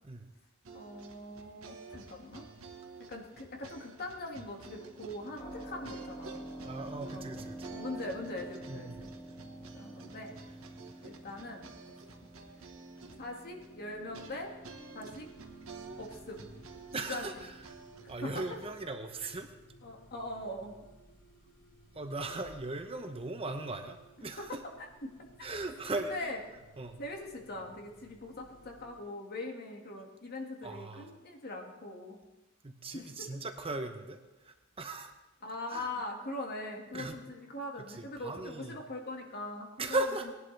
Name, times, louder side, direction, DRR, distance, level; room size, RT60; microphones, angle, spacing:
sound 1, 0.6-18.8, right 4 dB, 80° right, 1.3 m, -51 dB
voice 1, 0.7-2.5 3.1-6.4 7.1-7.4 7.7-9.1 9.7-10.4 11.0-11.7 13.2-14.5 14.9-15.3 16.0-16.5 16.9-17.4 18.2-18.6 19.8-20.8 24.2-24.3 25.4-25.5 26.0-26.4 27.0-32.2 32.9-33.3 35.4-40.3, left 2 dB, 50° left, 1 dB, 1.9 m, -42 dB
Keyboard (musical), 5.4-17.9, right 1 dB, 20° left, 1.7 m, -49 dB
voice 2, 6.6-7.7 8.7-9.0 16.9-17.8 18.1-19.5 21.9-24.6 25.4-26.3 26.8-27.0 30.6-31.1 32.6-35.1 35.7-35.9 36.9-37.2 37.9-38.8 39.8-40.3, right 2 dB, 30° right, 6 dB, 0.8 m, -38 dB
sound 2, 12.7-29.0, right 2 dB, 80° left, 2.4 m, -59 dB
19.0 x 11.0 x 3.3 m, 1.1 s
head